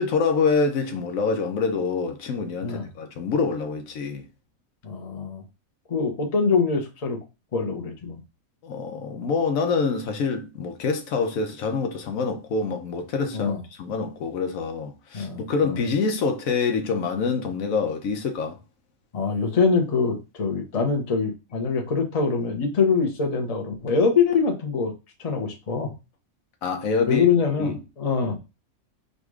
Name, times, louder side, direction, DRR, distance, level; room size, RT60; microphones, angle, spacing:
voice 1, 0.0-4.2 8.6-18.6 26.6-27.2 27.6-27.8, left 4 dB, 75° left, 1.1 m, -26 dB
voice 2, 4.8-5.4 5.9-7.2 7.5-8.2 13.3-13.6 15.1-15.8 19.1-24.9 25.2-25.9 27.1-28.4, left 5 dB, 30° left, 0.8 m, -24 dB
4.0 x 2.5 x 4.7 m
omnidirectional pair, 1.4 m